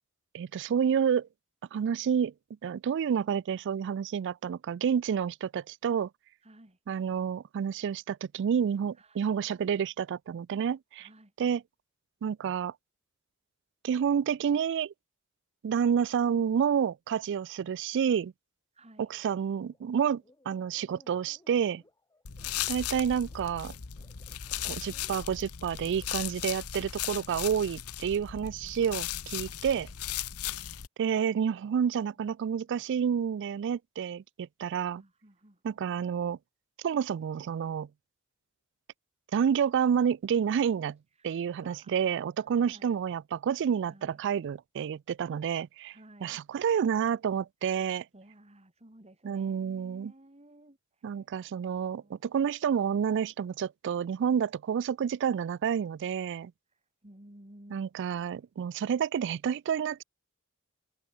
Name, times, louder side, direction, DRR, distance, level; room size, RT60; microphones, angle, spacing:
voice 1, 0.3-1.3 1.7-2.3 2.6-6.1 6.9-11.1 11.4-11.6 12.2-12.7 13.8-14.9 15.6-18.3 19.0-21.8 22.7-23.7 24.6-29.9 31.0-35.0 35.6-36.4 36.8-37.9 39.3-41.0 41.2-45.9 46.2-48.1 49.2-50.1 51.0-56.5 57.7-60.0, right 7 dB, 55° right, 0.3 m, -29 dB
voice 2, 6.4-6.8 9.0-9.2 11.0-11.3 18.7-19.1 35.0-35.8 41.2-42.0 42.5-43.0 43.9-44.2 45.9-46.4 48.1-50.8 51.6-52.4 57.0-57.9, right 1 dB, 30° right, 3.2 m, -55 dB
sound 1, 19.0-26.6, left 1 dB, 15° left, 2.8 m, -63 dB
sound 2, 22.2-30.9, left 11 dB, 90° left, 1.0 m, -37 dB
head